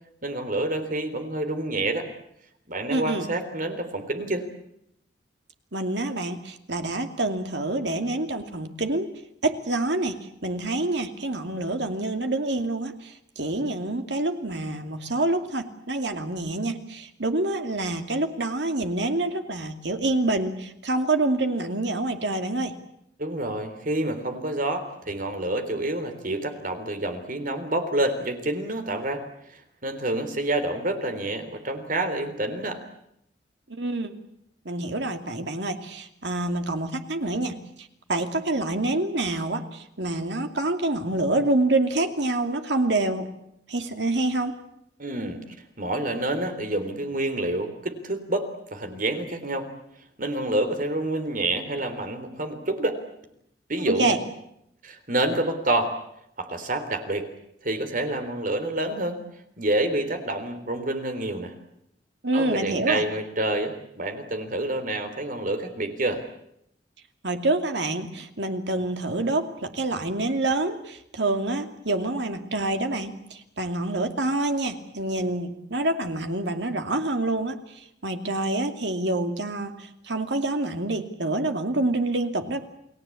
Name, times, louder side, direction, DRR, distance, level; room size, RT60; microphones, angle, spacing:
voice 1, 0.2-2.1 2.7-4.5 23.2-29.2 29.5-32.8 45.0-45.4 45.8-49.7 50.2-53.0 53.7-54.2 54.8-55.9 56.4-57.2 57.6-59.2 59.6-61.5 62.3-66.2, right 1 dB, 50° right, 8 dB, 3.6 m, -28 dB
voice 2, 2.9-3.3 5.7-9.1 9.4-10.2 10.4-22.7 33.7-34.1 34.6-43.3 43.7-44.5 53.8-54.2 62.2-63.0 67.2-82.6, right 2 dB, 70° right, 6 dB, 2.6 m, -27 dB
29.5 x 20.0 x 8.6 m, 0.78 s
head